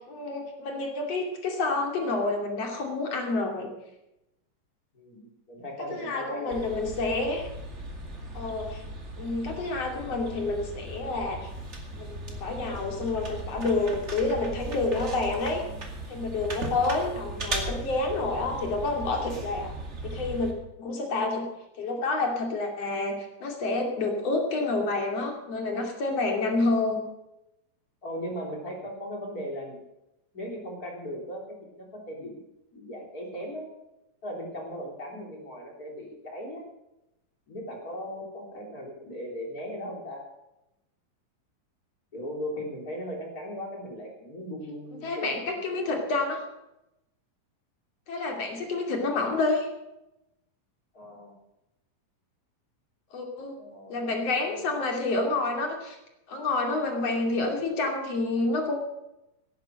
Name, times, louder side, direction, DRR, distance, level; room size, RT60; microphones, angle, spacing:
voice 1, 0.0-3.7 5.9-7.5 8.3-8.8 9.2-11.5 12.0-15.6 16.1-19.7 20.0-21.5 21.8-27.0 44.9-46.4 48.1-49.7 53.1-53.5 53.9-56.0 56.3-58.8, left 3 dB, 50° left, 2 dB, 3.5 m, -28 dB
voice 2, 4.9-7.0 28.0-29.8 30.3-32.5 32.7-33.7 34.2-36.7 37.5-40.3 42.1-46.0 50.9-51.4 53.6-54.7, equal, 25° left, 0 dB, 3.5 m, -38 dB
sound 1, 6.5-20.5, right 1 dB, 25° right, 2.0 m, -37 dB
18.0 x 10.5 x 6.4 m, 0.90 s
omnidirectional pair, 3.9 m